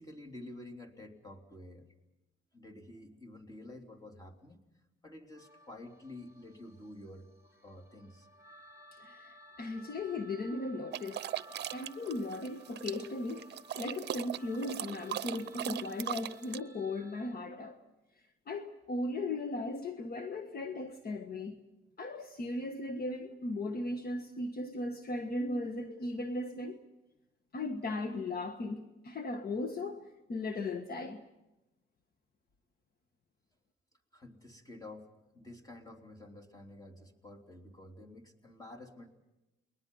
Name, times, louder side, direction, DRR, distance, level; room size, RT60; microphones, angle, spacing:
voice 1, 0.0-1.9 2.5-4.6 5.0-7.3 7.6-8.4 34.1-39.1, left 1 dB, 20° left, 3.3 m, -50 dB
sound 1, 5.3-17.3, right 1 dB, 15° right, 2.5 m, -57 dB
voice 2, 8.9-11.3 11.7-13.5 13.8-17.8 18.5-21.5 22.0-26.8 27.5-31.2, left 2 dB, 50° left, 1.5 m, -37 dB
sound 2, 10.9-16.6, right 11 dB, 60° right, 0.7 m, -39 dB
29.5 x 21.0 x 5.5 m
cardioid pair, 90°, 20 cm